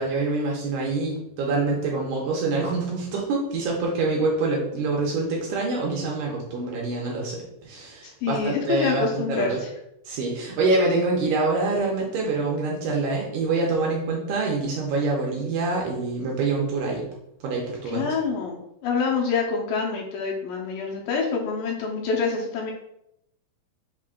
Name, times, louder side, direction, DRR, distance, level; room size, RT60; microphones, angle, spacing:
voice 1, 0.0-9.6 10.1-17.1 17.4-18.1, right 3 dB, 80° right, -2 dB, 2.1 m, -25 dB
voice 2, 8.0-9.7 17.9-22.7, left 5 dB, 80° left, 0 dB, 2.2 m, -26 dB
5.5 x 3.6 x 2.2 m, 0.81 s
omnidirectional pair, 4.2 m